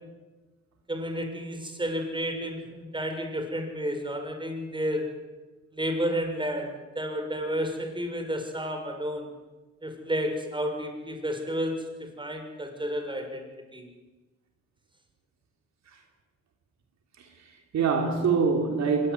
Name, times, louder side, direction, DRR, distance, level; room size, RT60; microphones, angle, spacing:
voice 1, 0.9-5.1 5.7-9.3 9.8-13.4 13.7-13.9, equal, 15° right, 5 dB, 6.5 m, -31 dB
voice 2, 17.2-19.1, right 5 dB, 65° right, 3 dB, 3.5 m, -25 dB
24.0 x 20.0 x 9.6 m, 1.2 s
cardioid pair, 90°, 30 cm